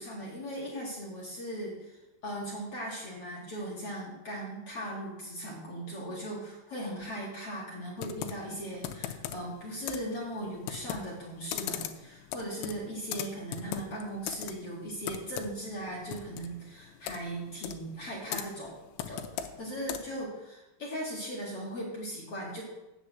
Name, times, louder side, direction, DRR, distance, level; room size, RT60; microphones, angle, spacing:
voice 1, 0.0-18.7 19.1-22.6, right 1 dB, 45° left, -4 dB, 2.0 m, -38 dB
Computer keyboard, 8.0-20.3, left 10 dB, 85° left, 3.0 m, -40 dB
7.0 x 6.9 x 7.9 m, 0.98 s
omnidirectional pair, 5.1 m